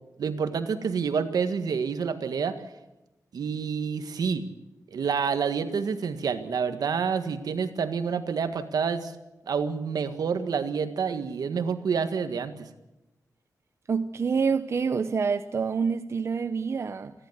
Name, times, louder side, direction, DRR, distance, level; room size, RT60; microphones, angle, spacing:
voice 1, 0.2-2.6 3.3-4.4 4.9-9.1 9.5-12.7, right 6 dB, 75° right, 9 dB, 1.8 m, -28 dB
voice 2, 13.9-17.1, right 5 dB, 45° right, 10 dB, 0.7 m, -27 dB
29.0 x 11.5 x 8.1 m, 0.99 s
wide cardioid pair, 155°, 7 cm